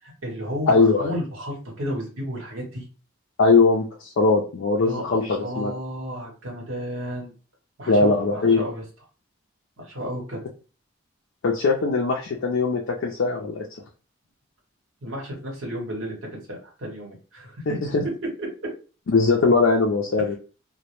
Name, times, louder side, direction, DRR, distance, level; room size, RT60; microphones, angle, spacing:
voice 1, 0.0-2.8 4.8-7.3 7.8-8.8 9.8-10.4 15.0-17.6 18.4-18.7, equal, 85° right, -2 dB, 0.9 m, -33 dB
voice 2, 0.7-1.1 3.4-5.7 7.9-8.6 11.4-13.7 17.9-18.0 19.1-20.4, left 3 dB, 65° left, 0 dB, 0.4 m, -20 dB
2.1 x 2.0 x 2.9 m, 0.35 s
head